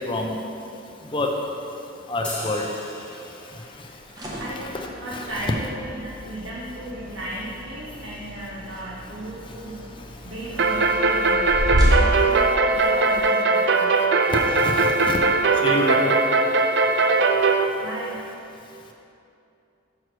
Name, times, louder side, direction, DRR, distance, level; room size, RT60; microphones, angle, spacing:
voice 1, 2.1-2.7 4.7-5.5 14.3-15.2 15.6-16.1, left 2 dB, 25° left, 1 dB, 0.6 m, -27 dB
sound 1, 2.2-3.9, left 1 dB, 5° left, 1.4 m, -37 dB
sound 2, 4.0-13.2, equal, 20° right, 0.9 m, -29 dB
voice 2, 4.3-4.6 5.0-9.8 10.2-11.6 11.8-13.9 17.8-18.2, right 1 dB, 80° right, -8 dB, 1.2 m, -35 dB
sound 3, 10.6-17.6, right 3 dB, 55° right, 0.4 m, -20 dB
6.3 x 4.7 x 6.0 m, 2.7 s
head